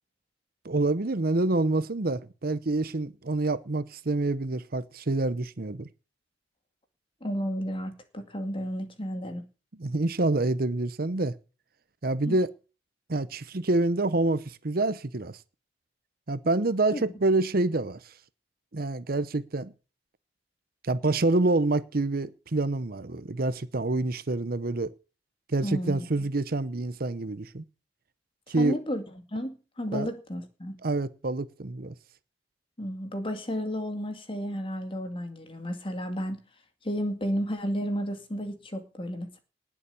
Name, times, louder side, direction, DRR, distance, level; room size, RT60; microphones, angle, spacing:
voice 1, 0.6-5.9 9.8-11.4 12.0-12.5 13.1-15.4 16.3-18.0 18.7-19.7 20.8-24.9 25.5-27.6 28.5-28.8 29.9-30.1 30.8-31.9, right 2 dB, 55° right, 0.8 m, -27 dB
voice 2, 7.2-9.4 12.3-12.4 16.9-17.0 25.6-26.1 28.6-29.0 29.3-30.8 32.8-36.4 36.8-39.4, equal, 30° left, 2.2 m, -32 dB
19.0 x 7.2 x 7.0 m
head